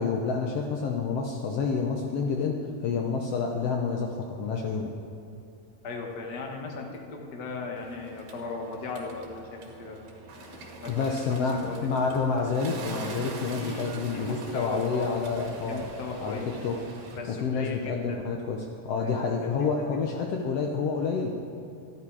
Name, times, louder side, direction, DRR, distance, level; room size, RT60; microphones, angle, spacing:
voice 1, 0.0-4.9 10.5-10.6 10.9-15.8 16.2-16.8 17.3-21.3, left 5 dB, 85° left, 2 dB, 1.3 m, -29 dB
voice 2, 5.8-10.0 10.3-11.4 11.7-11.9 13.6-15.1 15.7-16.5 17.2-18.2 18.9-19.5 19.8-20.3, left 3 dB, 45° left, 1 dB, 1.3 m, -38 dB
Bird, 7.8-17.2, right 3 dB, 85° right, 3.6 m, -43 dB
14.0 x 12.0 x 4.8 m, 2.6 s
omnidirectional pair, 3.9 m